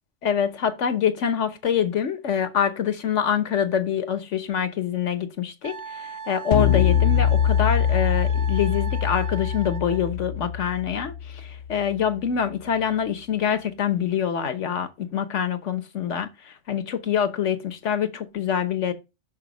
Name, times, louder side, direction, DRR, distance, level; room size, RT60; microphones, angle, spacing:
voice 1, 0.2-18.9, left 8 dB, 75° left, 1.3 m, -25 dB
Wind instrument woodwind instrument, 5.6-10.1, right 5 dB, 40° right, 0.9 m, -38 dB
sound 1, 6.5-11.8, left 9 dB, 60° left, 0.8 m, -23 dB
6.4 x 5.2 x 5.0 m
omnidirectional pair, 1.2 m